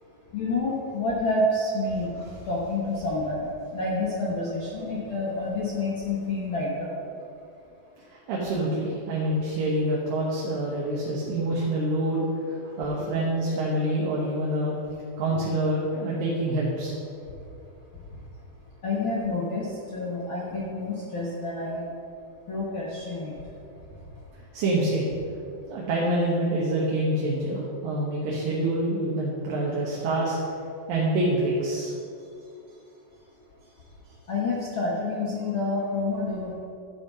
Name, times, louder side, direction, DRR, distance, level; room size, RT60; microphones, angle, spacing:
voice 1, 0.3-2.1 2.5-6.9 13.0-13.1 15.3-15.4 18.8-19.7 19.9-21.8 22.5-23.3 34.3-36.5, left 2 dB, 60° left, -6 dB, 1.3 m, -28 dB
voice 2, 8.1-14.7 15.2-17.0 20.5-20.6 24.5-25.1 25.7-30.4 30.9-31.9, right 1 dB, 75° right, -4 dB, 2.9 m, -26 dB
11.0 x 5.1 x 6.2 m, 2.6 s
omnidirectional pair, 4.1 m